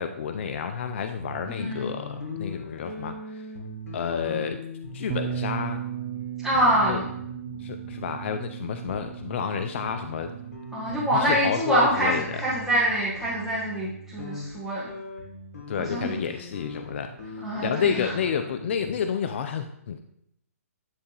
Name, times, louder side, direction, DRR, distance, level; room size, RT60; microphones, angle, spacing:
voice 1, 0.0-3.5 3.9-4.6 4.9-5.8 6.9-7.0 7.6-10.4 11.1-12.4 15.7-17.1 17.6-20.0, left 7 dB, 50° left, 7 dB, 0.5 m, -30 dB
sound 1, 1.2-11.6 11.9-18.9, equal, 75° left, 1.8 m, -40 dB
voice 2, 1.4-1.9 6.4-7.1 10.7-14.9 15.8-16.2 17.4-18.1, right 1 dB, ahead, -10 dB, 1.5 m, -25 dB
Bass guitar, 5.1-11.3, right 11 dB, 25° right, 0.4 m, -36 dB
9.5 x 3.4 x 3.3 m, 0.75 s
hypercardioid pair, 145°, 8 cm